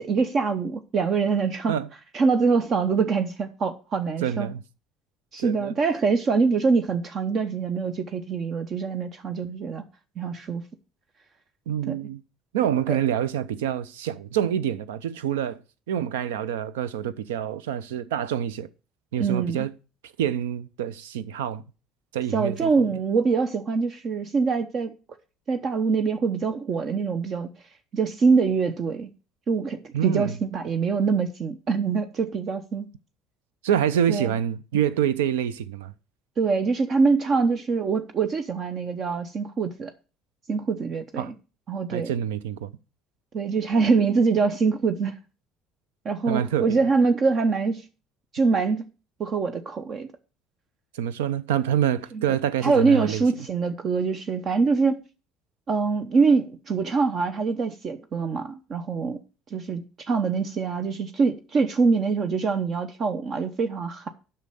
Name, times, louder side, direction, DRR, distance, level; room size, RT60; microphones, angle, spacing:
voice 1, 0.0-1.8 2.1-4.5 5.3-9.8 10.2-10.6 11.9-12.0 12.9-13.0 19.2-19.7 22.3-24.9 25.5-27.5 27.9-29.1 29.5-32.9 34.1-34.3 36.4-39.9 40.5-41.3 41.7-42.1 43.3-45.2 46.0-47.8 48.3-48.9 49.2-50.1 52.1-52.4 52.6-55.0 55.7-59.2 59.5-64.1, right 4 dB, 45° right, 0.8 m, -24 dB
voice 2, 4.2-4.6 5.4-5.7 11.7-12.2 12.5-15.6 15.9-18.7 19.1-19.7 20.2-21.6 22.1-22.7 29.9-30.4 33.6-35.9 41.2-41.3 41.9-42.7 46.3-46.9 50.9-53.2, right 9 dB, 85° right, 0.6 m, -26 dB
8.2 x 5.8 x 6.8 m
hypercardioid pair, 65°, 0 cm